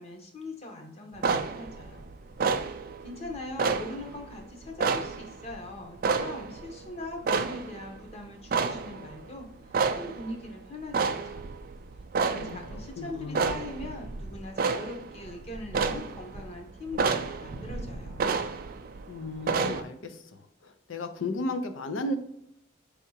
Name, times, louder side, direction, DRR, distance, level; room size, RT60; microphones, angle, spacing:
voice 1, 0.0-2.1 2.7-9.5 10.0-11.5 12.2-18.3, left 2 dB, 35° left, 3 dB, 0.8 m, -41 dB
sound 1, 1.2-19.8, right 5 dB, 45° right, 0.3 m, -31 dB
voice 2, 13.0-13.5 19.1-20.2 20.6-22.2, left 2 dB, 85° left, 8 dB, 0.6 m, -34 dB
4.6 x 3.5 x 2.7 m, 0.78 s
head